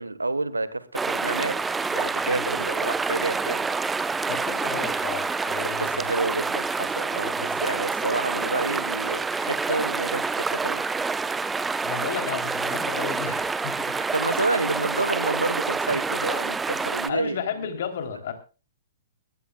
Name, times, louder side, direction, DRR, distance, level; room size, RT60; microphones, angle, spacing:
voice 1, 0.0-3.7 5.8-10.8 13.9-17.4, right 3 dB, 80° right, 1.2 m, -29 dB
sound 1, 0.9-17.1, right 4 dB, 10° right, 0.8 m, -27 dB
voice 2, 4.3-6.1 7.3-7.6 11.8-14.0 15.9-16.0 17.1-18.3, left 7 dB, 55° left, 3.2 m, -33 dB
21.0 x 15.5 x 2.3 m
figure-of-eight pair, 110°, 0 cm